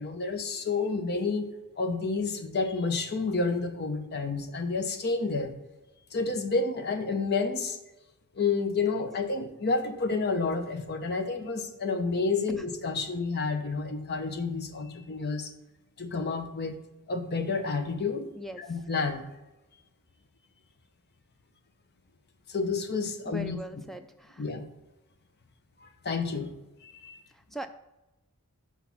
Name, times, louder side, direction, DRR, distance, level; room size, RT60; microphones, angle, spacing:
voice 1, 0.0-1.5 1.8-5.6 6.1-7.8 8.3-15.5 16.0-16.8 17.1-18.3 18.6-19.2 22.5-23.6 24.4-24.6 25.8-26.5 26.8-27.2, left 4 dB, 45° left, 7 dB, 0.8 m, -30 dB
voice 2, 23.3-24.4 27.3-27.7, equal, ahead, 8 dB, 0.3 m, -40 dB
6.2 x 4.2 x 5.9 m, 1.0 s
head